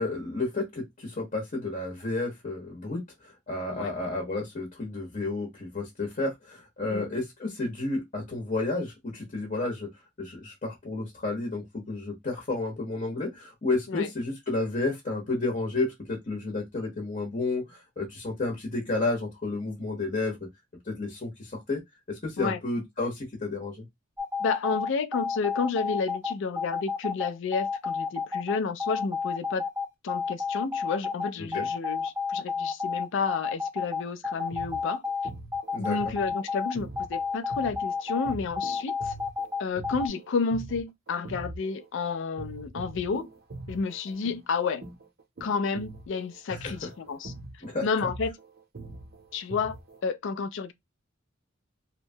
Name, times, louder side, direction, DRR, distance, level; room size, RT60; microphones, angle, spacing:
voice 1, 0.0-9.9 10.2-20.4 20.9-21.8 22.1-23.8 31.4-31.7 35.7-36.1 46.5-46.9 47.6-47.9, left 2 dB, 35° left, 0.8 m, -31 dB
sound 1, 24.2-40.1, left 5 dB, 5° right, 0.5 m, -30 dB
voice 2, 24.4-29.6 30.0-35.0 35.8-39.1 39.6-43.3 43.7-44.8 45.4-47.3 47.8-48.4 49.3-49.8 50.0-50.7, left 5 dB, 60° left, 0.4 m, -31 dB
sound 2, 34.3-42.0 42.4-50.0, right 2 dB, 45° right, 0.6 m, -43 dB
2.9 x 2.2 x 2.6 m
head